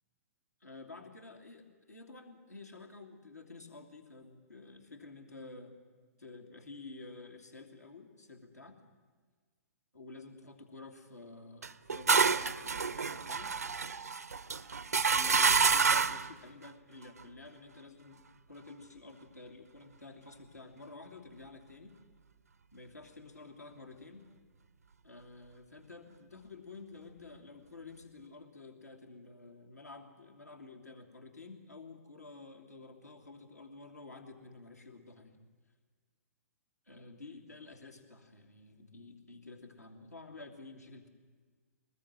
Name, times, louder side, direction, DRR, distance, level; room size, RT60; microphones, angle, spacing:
voice 1, 0.6-5.7 6.2-8.8 9.9-13.5 15.1-18.2 18.5-21.9 22.7-24.2 25.0-35.4 36.9-41.1, left 3 dB, 85° left, 3 dB, 2.9 m, -51 dB
sound 1, 11.6-16.3, right 5 dB, 75° right, 0.6 m, -28 dB
22.5 x 20.0 x 7.6 m, 1.5 s
figure-of-eight pair, 115°, 9 cm